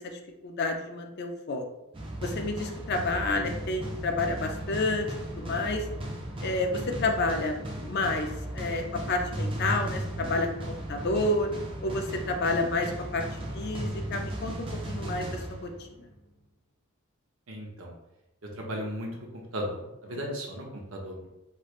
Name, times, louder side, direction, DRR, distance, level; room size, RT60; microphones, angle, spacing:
voice 1, 0.0-1.7 2.2-5.9 6.4-11.5 11.8-13.2 13.5-15.7 16.0-16.1, left 2 dB, 45° left, 4 dB, 0.4 m, -30 dB
sound 1, 1.9-16.1, right 1 dB, 25° right, 0.5 m, -36 dB
voice 2, 17.5-17.9 18.4-19.1 19.5-21.3, equal, 65° right, -1 dB, 0.7 m, -36 dB
3.2 x 3.1 x 2.4 m, 0.92 s
head